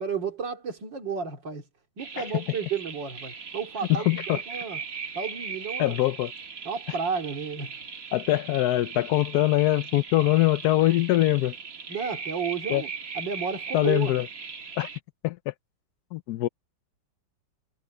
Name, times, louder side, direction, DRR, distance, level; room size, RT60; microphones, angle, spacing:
voice 1, 0.0-1.6 2.0-4.8 5.1-6.0 6.6-7.7 11.9-12.9 13.1-14.1, right 6 dB, 80° right, 3.2 m, -32 dB
sound 1, 2.0-15.0, right 5 dB, 50° right, 2.0 m, -39 dB
voice 2, 3.9-4.4 5.8-6.3 8.1-11.5 12.7-12.8 13.7-14.3 14.8-14.9 15.2-15.5 16.1-16.5, left 15 dB, 70° left, 1.1 m, -23 dB
omnidirectional pair, 1.9 m